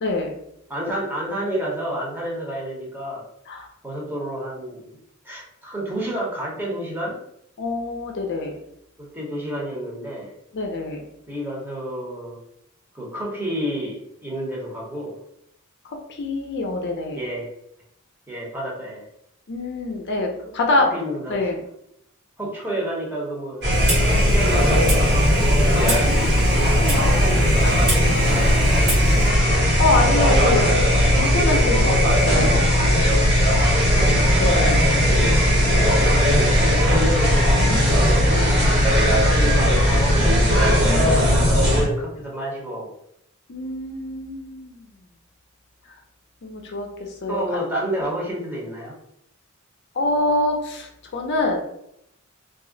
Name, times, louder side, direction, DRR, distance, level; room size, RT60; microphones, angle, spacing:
voice 1, 0.7-3.2 3.8-5.0 5.2-7.2 9.0-10.3 11.3-12.4 12.9-15.2 17.1-17.5 18.3-19.0 20.9-21.4 22.4-23.7 24.1-25.1 26.9-29.3 33.5-34.2 35.0-35.4 36.3-38.2 39.1-40.4 41.6-42.9 47.3-48.9, right 1 dB, 10° right, -4 dB, 0.8 m, -30 dB
voice 2, 7.6-8.5 10.5-11.0 15.9-17.2 19.5-20.9 21.3-21.6 25.8-27.1 29.8-32.7 34.4-35.0 40.8-41.8 43.5-44.9 46.4-47.4 49.9-51.6, left 2 dB, 55° left, 2 dB, 0.5 m, -25 dB
sound 1, 23.6-41.8, equal, 55° right, 1.2 m, -17 dB
Clock, 23.7-29.3, right 1 dB, 85° right, 1.2 m, -29 dB
2.3 x 2.0 x 3.7 m, 0.76 s
head